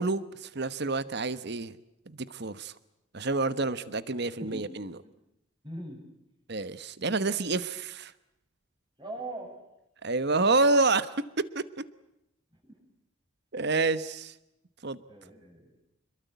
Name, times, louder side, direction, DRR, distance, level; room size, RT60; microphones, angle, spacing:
voice 1, 0.0-1.8 2.1-2.7 3.1-4.9 6.5-8.1 10.0-11.7 13.5-14.3 14.8-15.0, right 3 dB, 55° right, 15 dB, 1.2 m, -28 dB
voice 2, 4.4-4.7 5.1-5.2 5.6-6.0 9.0-9.5 12.6-12.8 15.1-15.8, right 1 dB, 25° right, 2 dB, 7.6 m, -41 dB
26.5 x 22.5 x 8.3 m, 0.85 s
head